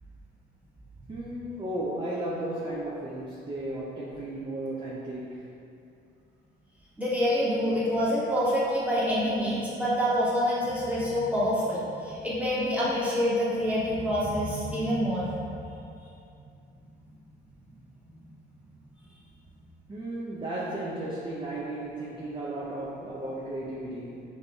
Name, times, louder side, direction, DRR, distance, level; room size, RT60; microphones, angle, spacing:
voice 1, 1.1-5.6 19.9-24.2, right 1 dB, 25° right, -5 dB, 0.5 m, -34 dB
voice 2, 7.0-15.5, equal, 5° right, -9 dB, 1.2 m, -26 dB
5.0 x 2.7 x 2.3 m, 2.6 s
cardioid pair, 90°, 20 cm